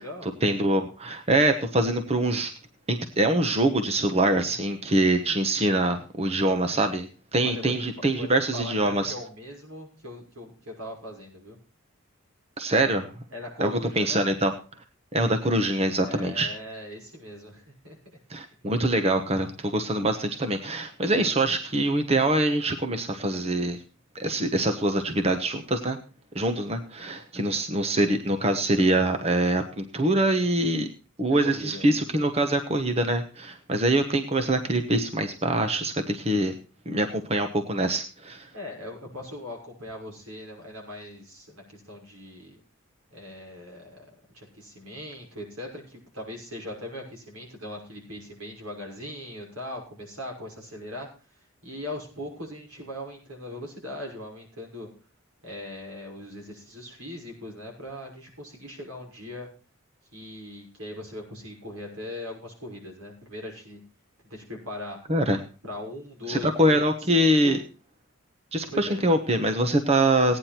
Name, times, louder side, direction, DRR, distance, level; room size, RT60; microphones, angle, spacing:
voice 1, 0.4-2.5 2.9-9.1 12.6-13.1 13.6-13.7 14.0-14.5 15.1-16.5 18.3-23.8 24.1-26.0 26.3-30.9 31.2-36.5 36.9-38.5 65.1-65.4 66.3-67.6 68.5-70.4, right 1 dB, 30° right, 6 dB, 1.1 m, -24 dB
voice 2, 7.4-11.6 13.3-14.2 16.0-18.0 31.3-31.8 38.5-42.6 43.1-44.1 44.3-54.9 55.4-59.5 60.1-63.8 64.3-65.0 65.6-67.6 68.7-69.0, left 1 dB, 85° right, 1 dB, 6.1 m, -40 dB
16.5 x 9.8 x 4.4 m, 0.35 s
head